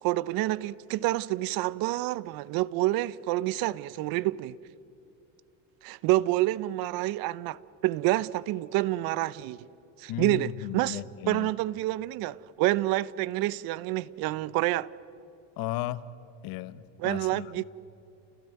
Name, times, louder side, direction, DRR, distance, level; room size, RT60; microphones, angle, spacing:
voice 1, 0.0-4.6 5.8-9.7 10.0-11.0 11.3-14.9 17.0-17.6, right 17 dB, 60° right, 0.8 m, -28 dB
voice 2, 10.1-11.5 15.6-16.0 16.4-17.6, left 14 dB, 60° left, 1.2 m, -35 dB
29.0 x 19.5 x 9.3 m
supercardioid pair, 100°, 40 cm